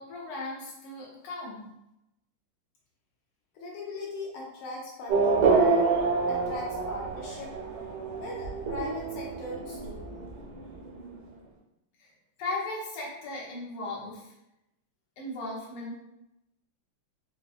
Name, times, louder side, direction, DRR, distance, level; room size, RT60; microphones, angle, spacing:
voice 1, 0.0-1.7 12.0-12.1 12.4-14.3 15.2-16.0, left 2 dB, 60° left, -4 dB, 1.4 m, -37 dB
voice 2, 3.5-5.9 6.3-7.5 8.2-10.1, left 2 dB, 80° left, -3 dB, 1.5 m, -39 dB
Race car auto racing / Accelerating revving vroom, 5.1-11.2, right 4 dB, 85° right, 1.7 m, -27 dB
4.9 x 2.2 x 2.4 m, 0.87 s
omnidirectional pair, 2.3 m